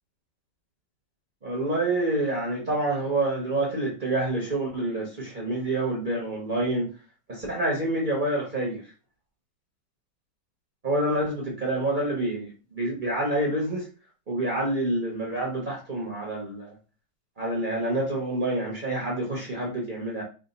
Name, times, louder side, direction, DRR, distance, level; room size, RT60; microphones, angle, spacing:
voice 1, 1.4-6.9 7.3-8.8 10.8-13.9 14.3-16.7 17.4-20.2, right 1 dB, 50° right, -3 dB, 0.6 m, -27 dB
3.5 x 2.2 x 4.0 m, 0.35 s
omnidirectional pair, 2.1 m